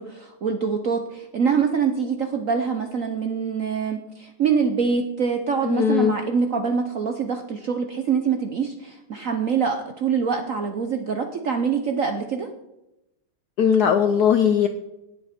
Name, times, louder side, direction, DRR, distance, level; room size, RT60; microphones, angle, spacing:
voice 1, 0.0-12.5, right 6 dB, 60° right, 5 dB, 0.8 m, -24 dB
voice 2, 5.6-6.1 13.6-14.7, left 8 dB, 75° left, 9 dB, 0.9 m, -19 dB
18.5 x 7.8 x 4.3 m, 0.93 s
omnidirectional pair, 2.3 m